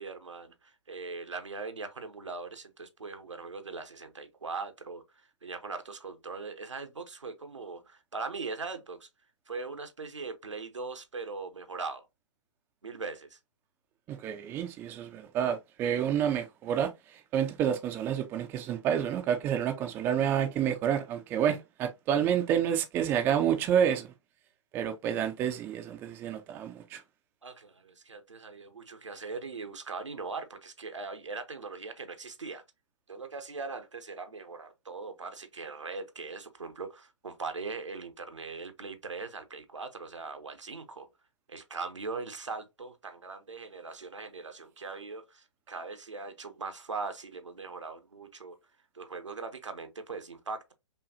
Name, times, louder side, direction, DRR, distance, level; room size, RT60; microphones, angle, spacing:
voice 1, 0.0-9.1 9.5-12.0 12.8-13.4 27.4-32.6 33.1-41.1 41.5-48.6 48.9-50.7, right 4 dB, 80° right, 0.9 m, -40 dB
voice 2, 14.1-24.1 24.7-27.0, right 9 dB, 15° right, 0.4 m, -29 dB
5.5 x 2.3 x 2.6 m
figure-of-eight pair, 125°, 15 cm